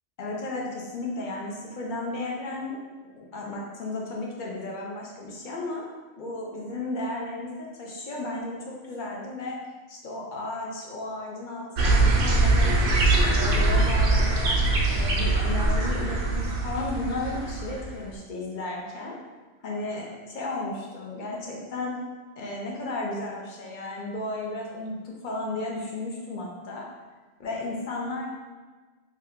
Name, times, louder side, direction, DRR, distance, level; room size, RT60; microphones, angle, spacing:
voice 1, 0.2-2.8 3.2-5.9 6.2-9.6 9.9-12.8 13.1-19.2 19.6-21.9 22.4-26.8 27.4-28.3, left 2 dB, 55° left, -2 dB, 0.6 m, -34 dB
sound 1, 11.8-17.9, right 2 dB, 60° right, 0.6 m, -22 dB
2.8 x 2.2 x 3.4 m, 1.3 s
omnidirectional pair, 1.2 m